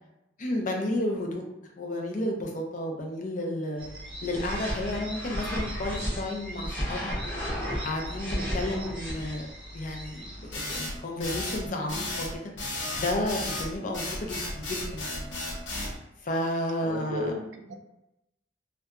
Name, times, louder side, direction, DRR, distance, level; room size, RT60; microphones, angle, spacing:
voice 1, 0.4-1.4 1.8-3.9 4.2-7.1 7.8-9.5 9.7-12.5 13.0-15.3 16.2-17.4, left 1 dB, 45° left, 1 dB, 0.5 m, -32 dB
sound 1, 3.8-10.8, right 1 dB, 30° right, 0.6 m, -42 dB
sound 2, 4.3-6.2 6.6-9.3, equal, 10° left, 0.7 m, -33 dB
sound 3, 10.5-15.9, left 2 dB, 75° left, 0.7 m, -34 dB
voice 2, 16.8-17.7, left 1 dB, 75° right, 3 dB, 0.4 m, -34 dB
2.7 x 2.2 x 2.4 m, 0.90 s
head